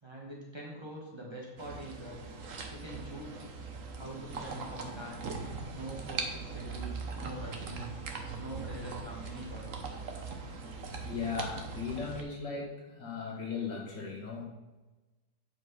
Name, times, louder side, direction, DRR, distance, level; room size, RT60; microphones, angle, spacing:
voice 1, 0.0-2.2 2.7-3.5 4.0-5.3 5.7-7.9 8.4-9.7, right 1 dB, 15° right, -4 dB, 2.1 m, -44 dB
sound 1, 1.6-12.2, right 4 dB, 50° right, 1.4 m, -40 dB
voice 2, 11.0-14.4, left 5 dB, 85° left, -1 dB, 2.6 m, -37 dB
9.1 x 5.2 x 5.6 m, 1.1 s
omnidirectional pair, 1.9 m